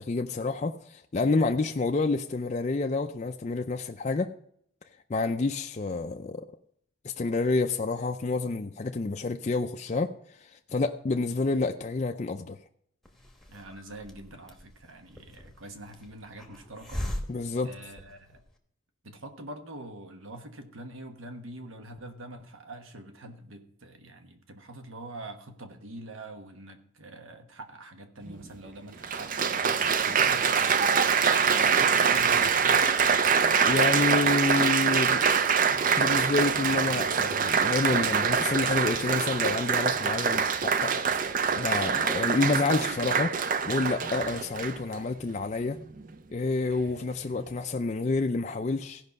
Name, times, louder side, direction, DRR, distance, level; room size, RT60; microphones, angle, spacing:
voice 1, 0.0-4.3 5.1-6.5 7.0-10.1 10.4-12.6 17.3-17.7 33.6-35.2 36.0-41.1 41.6-43.3 43.7-45.8 46.3-49.0, left 3 dB, 35° left, 0.4 m, -28 dB
Hiss, 13.0-18.5, left 1 dB, ahead, 1.0 m, -41 dB
voice 2, 13.5-17.1 17.6-18.4 19.0-30.9 31.4-32.7, right 1 dB, 75° right, 1.2 m, -45 dB
Applause, 28.3-28.4 29.0-44.9 45.7-46.0, right 6 dB, 40° right, 0.5 m, -24 dB
15.5 x 5.4 x 5.3 m
head